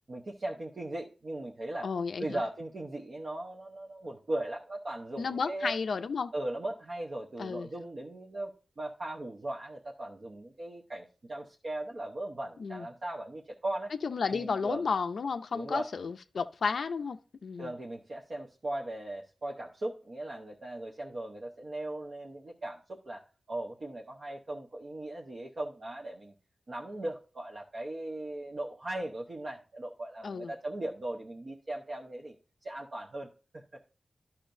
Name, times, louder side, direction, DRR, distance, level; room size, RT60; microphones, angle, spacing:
voice 1, 0.1-1.9 2.2-5.7 6.3-8.5 8.8-13.9 14.3-14.8 15.5-15.9 17.6-26.3 26.7-32.4 32.6-33.3 33.5-33.6, right 1 dB, 50° right, 0.8 m, -38 dB
voice 2, 1.8-2.4 5.2-6.3 7.4-7.7 12.6-12.9 14.0-17.7 30.2-30.5, left 5 dB, 75° left, 0.4 m, -32 dB
12.0 x 5.7 x 2.6 m
wide cardioid pair, 110°, 0 cm